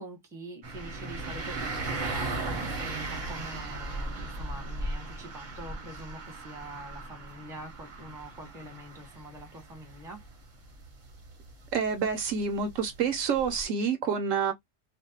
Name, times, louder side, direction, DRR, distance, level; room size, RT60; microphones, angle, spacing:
voice 1, 0.0-10.2, right 1 dB, 5° right, 0.7 m, -44 dB
sound 1, 0.6-13.6, right 2 dB, 45° right, 0.7 m, -37 dB
voice 2, 11.7-14.5, right 6 dB, 70° right, 0.9 m, -28 dB
2.5 x 2.1 x 2.6 m
omnidirectional pair, 1.4 m